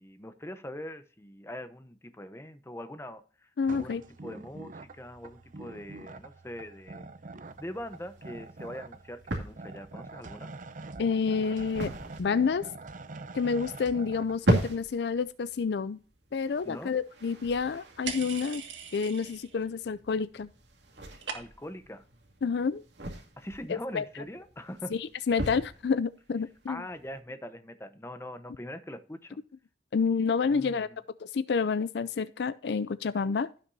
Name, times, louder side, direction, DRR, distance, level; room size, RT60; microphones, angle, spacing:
voice 1, 0.0-7.1 7.6-10.5 16.6-16.9 21.3-22.0 23.4-24.9 26.7-29.4 30.5-31.0, left 1 dB, 15° left, 0.8 m, -42 dB
voice 2, 3.6-4.0 11.0-11.9 12.2-12.7 13.3-16.0 16.3-18.6 18.9-20.5 22.4-22.8 23.7-24.0 24.9-26.8 29.9-30.9 31.2-33.5, left 5 dB, 65° left, 0.4 m, -29 dB
sound 1, 3.6-14.4, right 3 dB, 45° right, 0.7 m, -45 dB
sound 2, 7.5-27.2, right 1 dB, 70° right, 2.3 m, -37 dB
sound 3, 18.1-19.7 19.9-20.5 20.7-21.8, right 6 dB, 90° right, 1.9 m, -40 dB
16.0 x 6.0 x 2.6 m
head